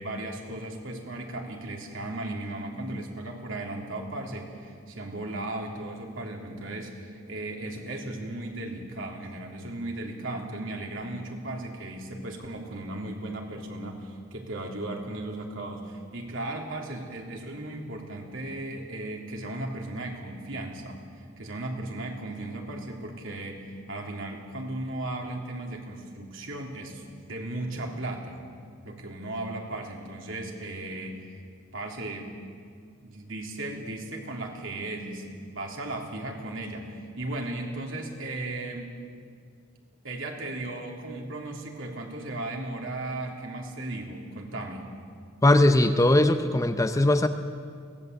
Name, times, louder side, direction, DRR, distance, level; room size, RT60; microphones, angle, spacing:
voice 1, 0.0-21.0 21.4-28.4 28.8-31.3 31.7-32.3 33.0-38.9 40.0-44.9, right 2 dB, 65° right, 0 dB, 3.4 m, -36 dB
voice 2, 45.4-47.3, left 1 dB, 15° left, 8 dB, 0.7 m, -20 dB
23.5 x 18.0 x 8.2 m, 2.2 s
head